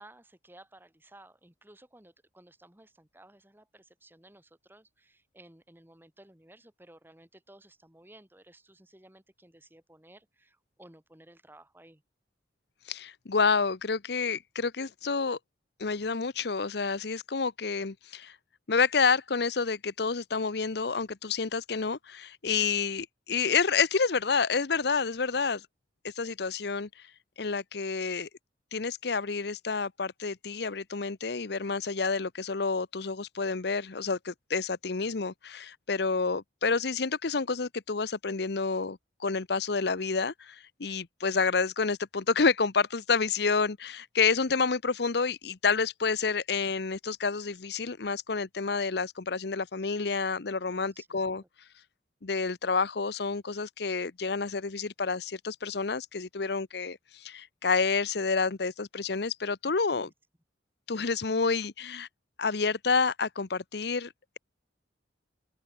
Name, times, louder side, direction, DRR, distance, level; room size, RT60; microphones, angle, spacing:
voice 1, 0.0-12.0 50.7-51.3 59.9-60.1, right 1 dB, 10° right, 2.1 m, -56 dB
voice 2, 12.9-15.4 15.8-18.4 18.7-25.6 26.0-27.1 27.4-28.3 28.7-51.4 52.2-60.1 60.9-62.1 62.4-64.4, left 4 dB, 60° left, 0.8 m, -29 dB
open air
head